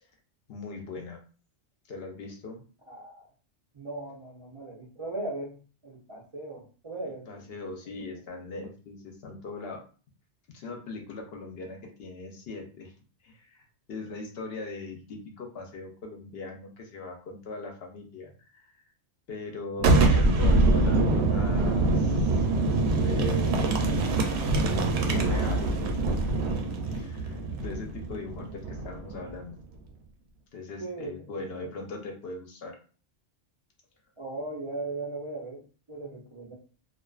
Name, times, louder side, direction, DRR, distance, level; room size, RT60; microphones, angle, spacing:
voice 1, 0.5-1.2 1.9-2.6 7.3-9.8 10.5-12.9 13.2-18.8 19.3-23.6 24.5-29.6 30.5-32.8, left 3 dB, 65° left, 2 dB, 0.8 m, -40 dB
voice 2, 2.9-3.3 3.7-5.6 5.8-7.4 30.8-31.7 34.2-36.5, right 2 dB, 45° right, -6 dB, 0.4 m, -38 dB
Boom, 19.8-29.4, right 2 dB, 70° right, 0.8 m, -24 dB
2.3 x 2.3 x 2.3 m, 0.38 s
omnidirectional pair, 1.2 m